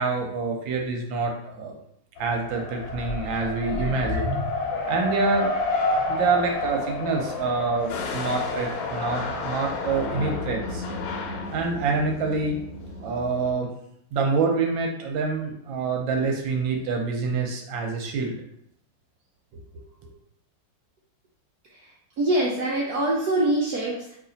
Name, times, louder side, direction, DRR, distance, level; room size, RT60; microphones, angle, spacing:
voice 1, 0.0-1.7 2.2-4.4 4.9-5.5 6.1-10.8 11.5-12.6 13.0-13.7 14.1-18.4, right 4 dB, 75° right, 2 dB, 1.2 m, -26 dB
Race car auto racing, 2.2-10.3, left 2 dB, 65° left, 1.4 m, -30 dB
sound 1, 2.9-5.5 6.1-6.2, left 2 dB, 25° right, 0.6 m, -33 dB
sound 2, 7.9-13.5, left 3 dB, 85° left, 1.6 m, -33 dB
voice 2, 22.2-24.1, right 1 dB, 90° right, -4 dB, 0.8 m, -24 dB
3.2 x 2.8 x 3.8 m, 0.71 s
omnidirectional pair, 2.4 m